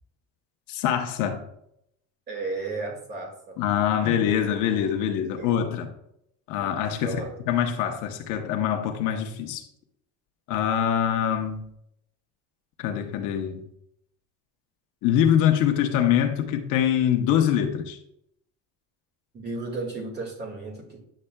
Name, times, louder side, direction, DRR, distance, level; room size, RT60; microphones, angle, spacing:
voice 1, 0.7-1.4 3.6-5.9 6.5-9.6 10.5-11.7 12.8-13.6 15.0-18.0, left 9 dB, 60° left, 1.0 m, -24 dB
voice 2, 2.3-3.6 5.4-5.5 7.0-7.3 19.3-21.0, right 3 dB, 30° right, 1.8 m, -33 dB
9.9 x 7.7 x 2.3 m
cardioid pair, 180°, 34 cm